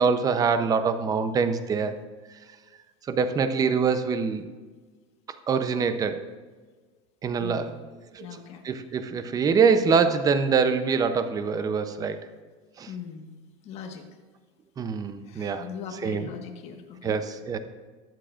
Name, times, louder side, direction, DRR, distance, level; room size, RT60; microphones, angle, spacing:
voice 1, 0.0-2.0 3.1-4.5 5.5-6.3 7.2-7.7 8.1-8.3 8.6-12.2 12.8-12.9 14.8-15.7 16.0-16.3 17.0-17.6, right 5 dB, 25° right, 10 dB, 0.6 m, -24 dB
voice 2, 7.4-7.8 8.2-8.6 12.9-13.3 13.6-14.1 15.2-17.2, left 7 dB, 45° left, 4 dB, 1.5 m, -40 dB
21.5 x 7.5 x 2.5 m, 1.4 s
supercardioid pair, 145°, 15 cm